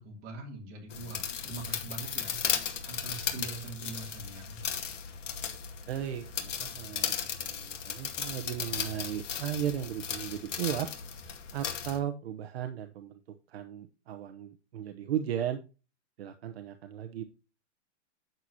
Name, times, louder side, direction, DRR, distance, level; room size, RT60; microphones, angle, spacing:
voice 1, 0.0-4.6, right 3 dB, 25° right, 0 dB, 3.2 m, -43 dB
sound 1, 0.9-12.0, left 7 dB, 85° left, 2.2 m, -36 dB
voice 2, 5.9-10.9 11.5-13.2 13.5-15.6 16.2-17.2, right 10 dB, 60° right, 7 dB, 1.0 m, -36 dB
9.1 x 7.8 x 2.8 m, 0.31 s
supercardioid pair, 170°, 36 cm